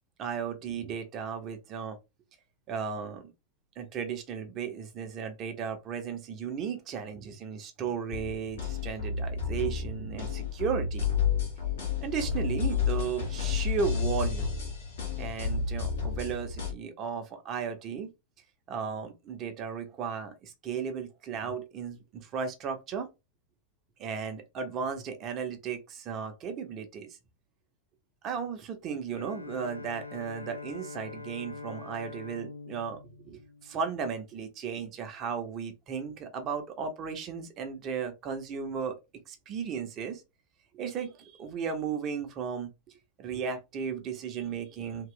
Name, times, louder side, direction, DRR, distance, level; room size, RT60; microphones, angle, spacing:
voice 1, 0.2-2.0 2.7-3.3 3.8-11.1 12.0-14.5 15.2-18.1 18.7-23.1 24.0-27.1 28.2-33.0 33.2-39.0 39.3-40.2 40.7-42.7 43.2-45.1, right 6 dB, 35° right, 0.7 m, -35 dB
sound 1, 8.1-16.7, left 6 dB, 60° left, 1.5 m, -31 dB
Bowed string instrument, 29.2-34.4, left 4 dB, 80° left, 0.3 m, -44 dB
3.0 x 2.3 x 3.8 m
figure-of-eight pair, 90°, 0 cm